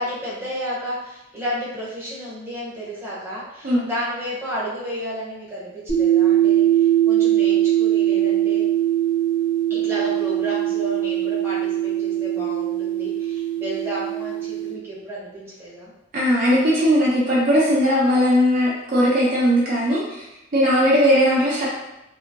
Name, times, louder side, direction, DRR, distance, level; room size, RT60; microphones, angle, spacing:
voice 1, 0.0-8.6 9.7-15.9, equal, 10° right, -8 dB, 0.8 m, -32 dB
sound 1, 5.9-14.7, right 12 dB, 60° left, 1.3 m, -21 dB
voice 2, 16.1-20.2 20.5-21.7, equal, 40° right, -6 dB, 0.5 m, -18 dB
2.7 x 2.6 x 2.5 m, 0.92 s
head